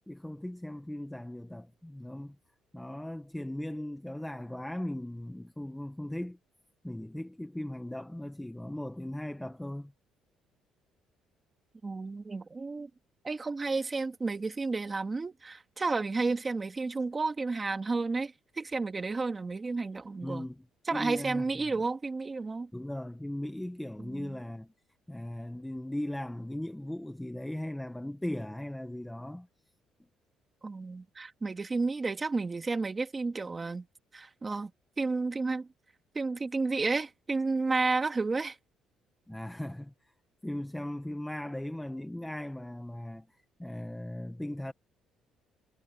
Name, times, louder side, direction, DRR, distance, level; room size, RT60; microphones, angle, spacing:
voice 1, 0.1-2.4 2.7-6.4 6.8-9.9 20.2-20.6 20.9-21.6 22.7-24.7 25.1-29.5 39.3-40.1 40.4-44.7, left 1 dB, 5° left, 0.9 m, -38 dB
voice 2, 11.8-12.9 13.2-20.5 20.9-22.7 24.0-24.4 30.6-33.9 34.1-34.7 35.0-35.7 36.1-38.6, right 3 dB, 20° right, 2.0 m, -31 dB
cardioid pair, 160°, 0 cm